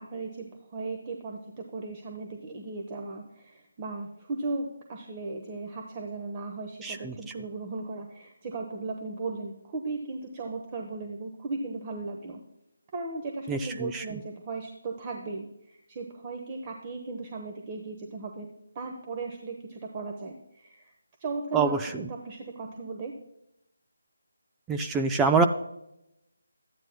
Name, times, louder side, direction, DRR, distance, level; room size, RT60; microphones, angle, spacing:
voice 1, 0.0-12.4 12.9-18.5 18.7-20.9 21.2-23.1, right 3 dB, 25° right, 2 dB, 1.0 m, -36 dB
voice 2, 6.8-7.1 13.5-14.0 21.5-21.8 24.7-25.5, right 4 dB, 10° right, 5 dB, 0.4 m, -25 dB
13.5 x 9.7 x 2.2 m, 0.83 s
figure-of-eight pair, 160°, 0 cm